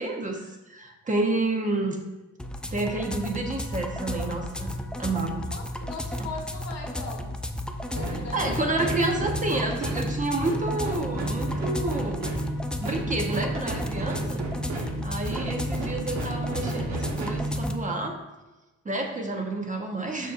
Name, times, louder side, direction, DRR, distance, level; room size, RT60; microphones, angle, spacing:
voice 1, 0.0-2.0 2.7-5.5 8.3-12.3 12.8-14.4 15.0-18.2 18.8-20.3, right 2 dB, 25° right, 2 dB, 1.0 m, -29 dB
sound 1, 2.4-17.8, left 1 dB, 5° left, 0.4 m, -34 dB
voice 2, 5.5-7.3 7.8-8.9, left 4 dB, 60° left, 1 dB, 1.5 m, -39 dB
sound 2, 8.0-18.1, right 1 dB, 60° right, 1.4 m, -32 dB
6.6 x 5.5 x 2.6 m, 1.1 s
cardioid pair, 90°, 30 cm